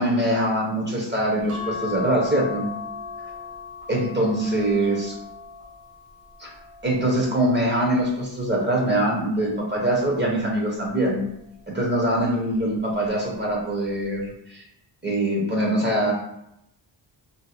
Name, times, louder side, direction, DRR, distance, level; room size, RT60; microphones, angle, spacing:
voice 1, 0.0-2.7 3.9-5.2 6.4-6.5 6.8-11.2 11.7-14.6 15.0-16.1, right 1 dB, 25° right, -2 dB, 0.6 m, -23 dB
sound 1, 1.5-8.1 8.7-10.1 11.4-11.8 12.1-12.2, left 5 dB, 55° right, 1.0 m, -38 dB
2.6 x 2.0 x 4.0 m, 0.80 s
wide cardioid pair, 135°, 43 cm